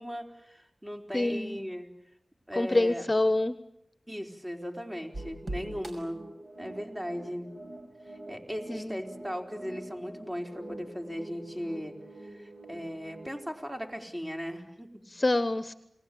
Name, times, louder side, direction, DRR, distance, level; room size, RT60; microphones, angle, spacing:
voice 1, 0.0-1.9 2.5-3.1 4.1-6.2 6.6-7.5 8.0-11.9 12.2-15.1, equal, 20° right, 3 dB, 4.4 m, -38 dB
voice 2, 1.1-1.6 2.6-3.6 8.7-9.0 15.1-15.7, left 2 dB, 30° left, 12 dB, 1.1 m, -26 dB
sound 1, 5.1-13.5, right 1 dB, 60° right, 5.5 m, -44 dB
29.5 x 19.5 x 8.6 m, 0.80 s
cardioid pair, 50°, 0 cm